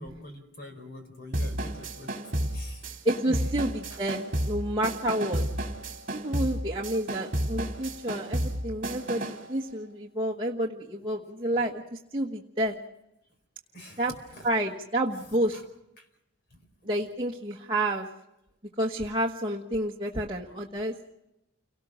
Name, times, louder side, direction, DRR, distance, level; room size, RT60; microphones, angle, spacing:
voice 1, 0.0-2.9 3.2-3.6 3.9-4.0 11.5-11.6 13.7-14.8 15.2-15.6 16.5-16.7, left 1 dB, 45° left, 6 dB, 4.7 m, -46 dB
sound 1, 1.3-9.5, right 1 dB, 40° right, 3.2 m, -32 dB
voice 2, 3.0-5.4 6.1-12.8 14.0-14.1 14.4-15.6 16.8-18.1 18.8-20.9, right 1 dB, 25° right, -2 dB, 1.4 m, -29 dB
29.5 x 19.0 x 6.3 m, 0.88 s
head